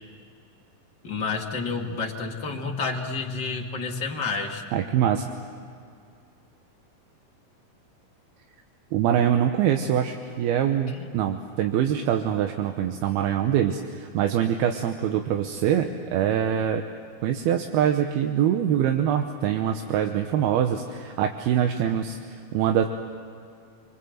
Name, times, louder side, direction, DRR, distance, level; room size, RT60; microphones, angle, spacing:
voice 1, 1.0-4.7, left 4 dB, 35° left, 1 dB, 1.9 m, -29 dB
voice 2, 4.7-5.3 8.9-16.8 17.2-22.2 22.5-22.9, right 9 dB, 80° right, 5 dB, 2.9 m, -24 dB
27.0 x 25.0 x 7.9 m, 2.4 s
omnidirectional pair, 4.4 m